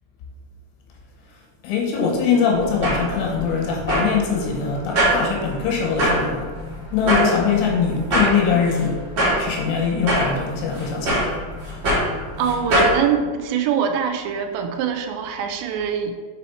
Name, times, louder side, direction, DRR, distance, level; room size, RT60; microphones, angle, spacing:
voice 1, 1.6-6.5 6.9-9.0 9.4-11.3, left 6 dB, 80° left, 0 dB, 3.2 m, -22 dB
sound 1, 2.5-13.0, equal, 50° right, 1.4 m, -24 dB
voice 2, 12.4-16.2, right 7 dB, 85° right, 5 dB, 2.5 m, -23 dB
6.3 x 4.2 x 4.2 m, 1.5 s
omnidirectional pair, 5.5 m